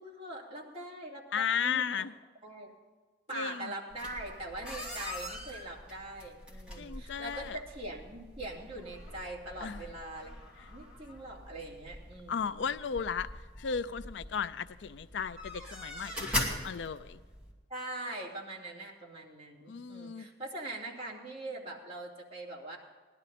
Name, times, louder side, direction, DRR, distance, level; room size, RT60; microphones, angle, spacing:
voice 1, 0.0-2.1 2.4-2.7 3.3-10.3 10.7-12.7 17.7-22.8, right 2 dB, 30° right, -4 dB, 2.7 m, -42 dB
voice 2, 1.3-2.1 3.3-3.7 6.8-7.6 9.6-9.8 12.3-13.3 13.6-17.2 19.7-20.3, left 7 dB, 70° left, 14 dB, 0.4 m, -35 dB
sound 1, 3.9-17.5, left 1 dB, 5° right, 2.4 m, -42 dB
17.5 x 12.0 x 4.2 m, 1.4 s
head